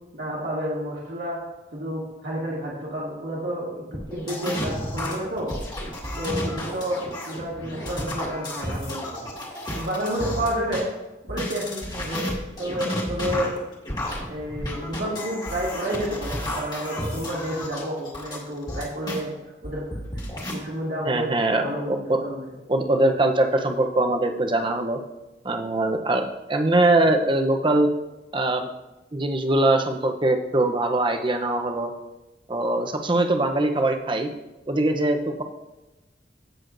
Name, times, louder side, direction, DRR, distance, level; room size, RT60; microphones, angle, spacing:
voice 1, 0.1-1.4 1.7-5.5 6.2-9.2 9.7-10.9 11.2-12.3 12.6-13.5 14.3-19.3 19.6-20.0 20.5-21.3 21.6-22.5, equal, 65° right, -6 dB, 2.1 m, -30 dB
sound 1, 3.9-10.8 11.3-19.2 19.6-20.5, left 1 dB, 25° left, 1.8 m, -32 dB
voice 2, 21.1-22.2 22.7-25.0 25.4-27.9 28.3-28.7 29.1-31.9 32.5-34.3 34.7-35.4, right 2 dB, 30° right, 5 dB, 0.8 m, -22 dB
15.5 x 6.4 x 2.6 m, 1.0 s
head